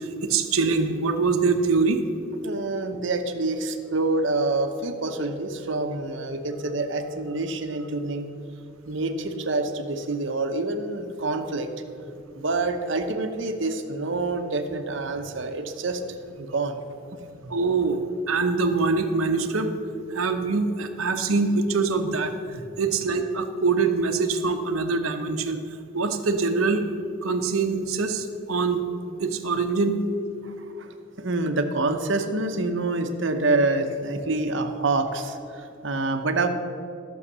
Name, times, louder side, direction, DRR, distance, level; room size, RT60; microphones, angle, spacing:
voice 1, 0.0-2.0 14.7-14.8 17.4-19.7 20.1-25.6 25.9-26.8 27.2-28.8 29.2-30.0, right 4 dB, 85° right, 7 dB, 0.9 m, -24 dB
voice 2, 2.4-8.3 8.9-11.7 12.3-16.0 16.4-16.8 30.4-36.5, right 2 dB, 60° right, 7 dB, 0.9 m, -27 dB
12.5 x 6.5 x 6.8 m, 2.6 s
head